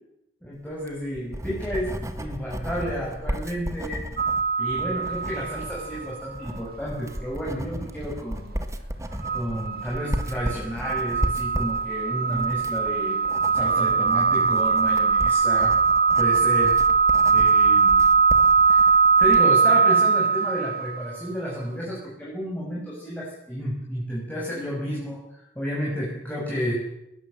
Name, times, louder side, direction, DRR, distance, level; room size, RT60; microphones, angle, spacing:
voice 1, 0.4-4.0 4.6-8.5 9.3-13.2 13.5-15.7 16.2-16.8 17.3-18.0 18.7-25.2 25.5-26.7, equal, 10° left, -5 dB, 6.8 m, -31 dB
Writing, 0.7-19.5, equal, 15° right, 1.8 m, -34 dB
sound 1, 4.2-6.1 6.5-6.6 9.2-21.1, right 5 dB, 60° right, 3.0 m, -21 dB
20.5 x 19.5 x 7.8 m, 0.84 s
head